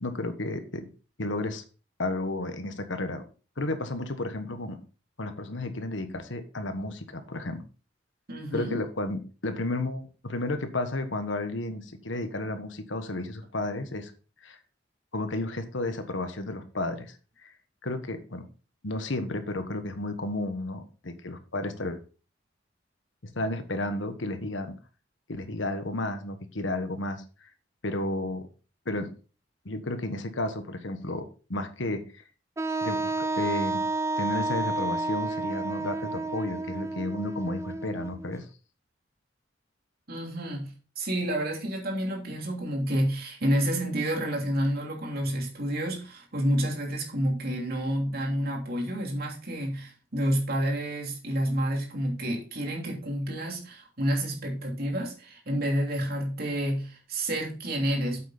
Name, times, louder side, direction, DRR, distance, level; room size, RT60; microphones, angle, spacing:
voice 1, 0.0-0.9 1.2-1.6 2.0-3.2 3.6-4.8 5.2-7.6 8.5-14.1 14.4-14.6 15.1-17.2 17.4-17.5 17.8-18.5 18.8-22.0 23.3-24.8 25.3-27.5 27.8-28.5 28.8-29.1 29.6-31.2 31.5-32.2 32.8-33.8 34.2-38.4, left 2 dB, 75° left, 8 dB, 1.4 m, -32 dB
voice 2, 8.3-8.8 40.1-58.2, equal, 55° right, 0 dB, 2.9 m, -29 dB
Wind instrument woodwind instrument, 32.6-38.3, right 2 dB, 15° right, 0.3 m, -30 dB
8.4 x 7.9 x 4.0 m, 0.36 s
head